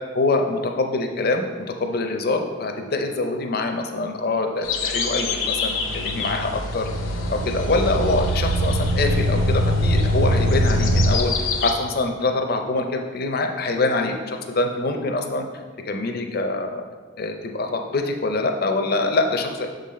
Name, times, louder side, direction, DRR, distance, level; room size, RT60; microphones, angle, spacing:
voice 1, 0.1-1.4 1.8-6.9 7.3-11.3 11.6-15.5 15.9-16.8 17.2-19.7, left 3 dB, 50° left, 4 dB, 0.6 m, -24 dB
sound 1, 4.6-11.7, left 5 dB, 85° left, 0.7 m, -29 dB
sound 2, 5.8-11.2, equal, 65° right, 0.4 m, -22 dB
6.8 x 3.9 x 4.2 m, 1.5 s
head